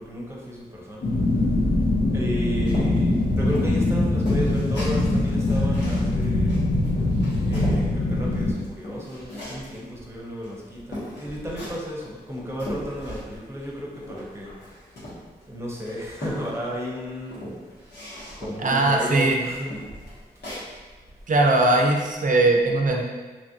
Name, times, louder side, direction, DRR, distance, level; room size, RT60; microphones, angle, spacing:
voice 1, 0.0-1.6 2.1-6.8 7.3-14.5 14.9-15.1 15.4-19.9 20.3-20.4, equal, 15° right, -3 dB, 0.8 m, -34 dB
sound 1, 1.0-8.5, left 2 dB, 60° left, 0.5 m, -22 dB
sound 2, 2.7-7.9 8.3-9.8 10.4-10.5 10.9-11.9 12.3-13.4 13.7-15.4 15.8-16.8 17.2-18.7 19.2-19.3 19.7-20.7, left 1 dB, 80° left, 1.1 m, -37 dB
voice 2, 18.6-19.4 21.3-23.0, right 2 dB, 50° right, 1 dB, 0.5 m, -20 dB
3.0 x 2.5 x 2.8 m, 1.3 s
cardioid pair, 55°, 17 cm